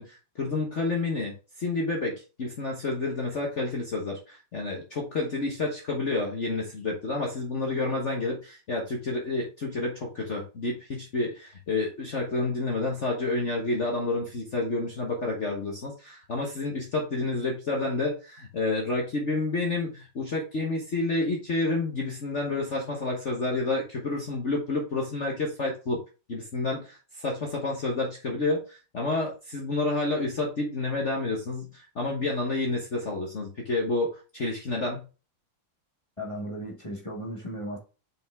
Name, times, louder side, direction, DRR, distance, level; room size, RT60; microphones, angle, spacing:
voice 1, 0.0-26.0 26.3-35.1, left 2 dB, 40° left, 0 dB, 1.3 m, -29 dB
voice 2, 36.2-37.8, equal, 15° left, -2 dB, 1.5 m, -36 dB
5.7 x 5.2 x 3.5 m, 0.33 s
omnidirectional pair, 2.2 m